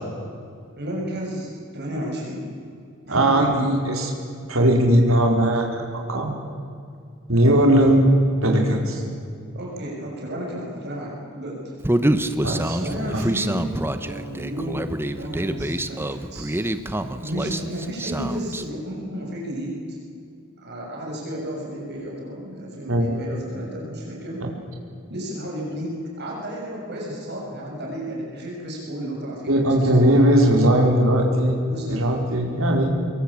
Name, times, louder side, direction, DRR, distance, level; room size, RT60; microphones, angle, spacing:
voice 1, 0.8-2.5 3.1-3.6 9.5-11.8 12.8-16.5 17.2-20.0 20.6-24.4 25.1-30.1 31.6-32.7, equal, 55° right, -1 dB, 6.7 m, -32 dB
voice 2, 3.1-4.1 4.5-5.8 6.1-6.3 7.3-8.1 8.4-9.0 12.4-12.8 13.1-13.3 22.9-23.1 24.4-24.5 29.5-31.5 31.9-32.9, right 1 dB, 75° right, 1 dB, 4.4 m, -18 dB
Human voice, 11.8-18.6, right 1 dB, 10° right, 1.1 m, -26 dB
25.5 x 22.0 x 8.6 m, 2.4 s
head